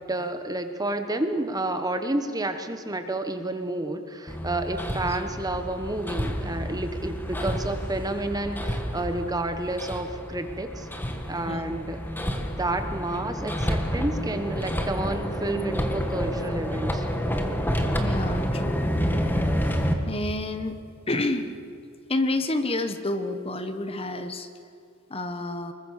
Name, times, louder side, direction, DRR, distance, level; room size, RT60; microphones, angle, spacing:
voice 1, 0.1-10.9 11.3-12.0 12.6-17.1, right 2 dB, 15° right, 8 dB, 1.3 m, -30 dB
Hammer, 4.3-19.9, equal, 10° left, 1.7 m, -29 dB
voice 2, 18.0-18.9 20.0-20.8 21.1-21.5 22.1-24.5 25.1-25.7, left 2 dB, 25° left, 8 dB, 1.3 m, -29 dB
26.0 x 22.0 x 6.7 m, 2.5 s
head